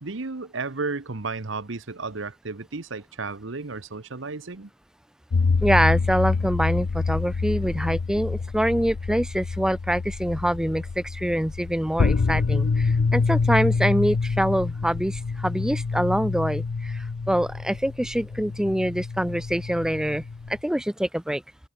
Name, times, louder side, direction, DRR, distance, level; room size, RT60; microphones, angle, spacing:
voice 1, 0.0-4.7, right 3 dB, 65° right, 1.1 m, -33 dB
sound 1, 5.3-20.6, left 4 dB, 85° left, 0.6 m, -26 dB
voice 2, 5.6-20.2 20.5-21.4, equal, 5° right, 0.4 m, -25 dB
head